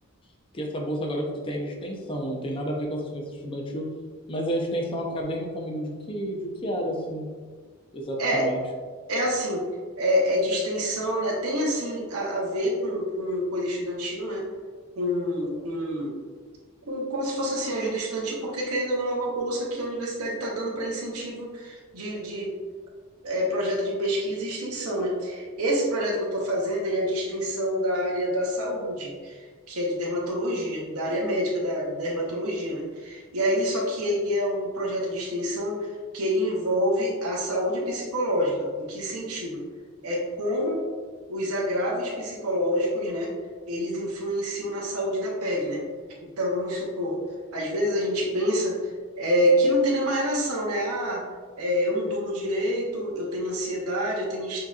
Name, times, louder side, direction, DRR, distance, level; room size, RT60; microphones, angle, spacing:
voice 1, 0.5-3.8 4.3-7.3 7.9-8.6, equal, 25° left, 0 dB, 0.6 m, -30 dB
voice 2, 9.1-9.6 10.0-14.4 15.0-16.2 16.9-22.5 23.2-29.4 29.7-35.9 36.1-39.6 40.0-40.8 41.3-43.3 43.7-45.8 46.4-47.2 47.5-48.7 49.2-51.2 51.6-54.6, equal, 85° right, -3 dB, 0.9 m, -27 dB
6.2 x 2.8 x 2.4 m, 1.5 s
head